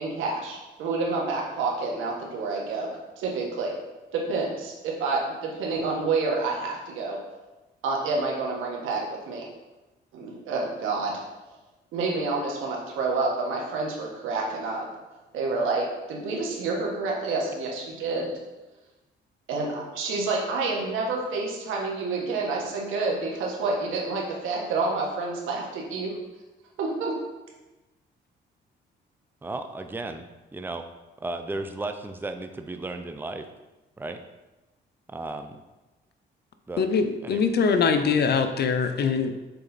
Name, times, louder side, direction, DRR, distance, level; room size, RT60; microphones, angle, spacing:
voice 1, 0.0-2.9 3.2-3.7 4.1-7.2 7.8-9.5 10.1-11.1 11.9-14.8 15.3-18.3 19.5-26.1 26.8-27.1, right 3 dB, 90° right, -2 dB, 1.6 m, -28 dB
voice 2, 29.4-30.8 31.2-33.5 34.0-34.2 35.1-35.6 36.7-36.8 37.2-37.4, right 2 dB, 10° right, 7 dB, 0.5 m, -34 dB
voice 3, 36.8-39.3, left 5 dB, 55° left, 8 dB, 0.7 m, -23 dB
6.7 x 4.2 x 4.1 m, 1.1 s
cardioid pair, 90°, 20 cm